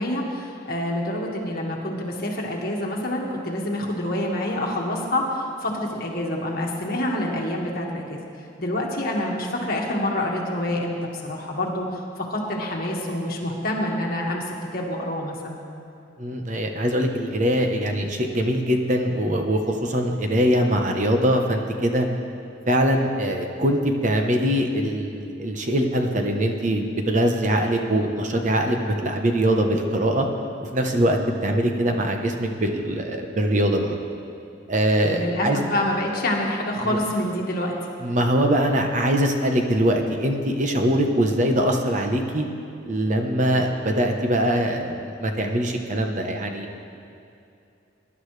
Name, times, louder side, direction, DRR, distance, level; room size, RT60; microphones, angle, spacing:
voice 1, 0.0-8.2 8.6-11.0 11.2-15.6 35.1-37.7, left 1 dB, 50° left, -1 dB, 1.8 m, -27 dB
voice 2, 16.2-22.1 22.7-30.3 30.6-33.9 34.7-35.6 36.8-37.0 38.0-42.5 42.9-46.7, equal, 40° right, 3 dB, 1.0 m, -22 dB
22.0 x 11.0 x 3.3 m, 2.7 s
head